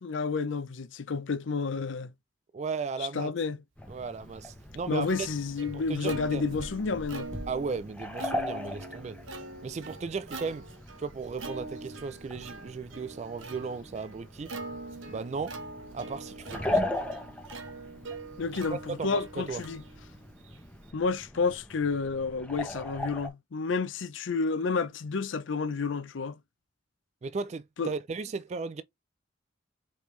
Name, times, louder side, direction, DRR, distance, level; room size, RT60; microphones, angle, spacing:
voice 1, 0.0-2.1 3.0-3.6 4.9-7.3 18.4-19.8 20.9-26.4 27.8-27.9, left 4 dB, 75° left, 0.5 m, -30 dB
voice 2, 2.5-3.3 3.9-5.3 5.7-6.5 7.5-9.2 9.6-10.7 11.0-14.5 15.1-15.6 15.9-16.9 18.7-19.6 27.2-28.8, right 4 dB, 35° right, 0.3 m, -36 dB
sound 1, 3.8-23.3, left 1 dB, 5° left, 0.8 m, -39 dB
Plucked string instrument, 4.2-20.9, right 3 dB, 90° right, 1.2 m, -44 dB
5.1 x 3.2 x 3.1 m
head